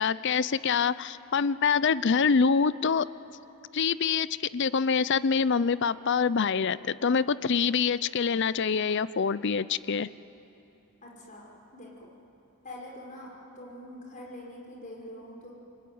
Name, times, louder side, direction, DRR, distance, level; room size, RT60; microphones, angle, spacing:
voice 1, 0.0-3.1 3.7-4.3 4.5-10.1, left 5 dB, 55° left, 17 dB, 0.5 m, -25 dB
voice 2, 11.0-12.1 12.6-13.3 13.6-15.5, left 1 dB, 35° left, -2 dB, 5.9 m, -44 dB
27.0 x 23.0 x 9.5 m, 3.0 s
head